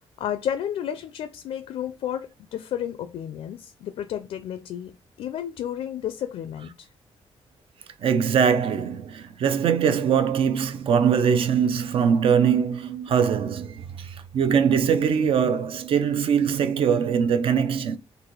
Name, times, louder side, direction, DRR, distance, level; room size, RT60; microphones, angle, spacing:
voice 1, 0.2-4.9 5.2-6.9, left 10 dB, 80° left, 0.5 m, -32 dB
voice 2, 8.0-18.0, right 7 dB, 60° right, 0.5 m, -22 dB
4.0 x 2.7 x 4.5 m
wide cardioid pair, 180°, 10 cm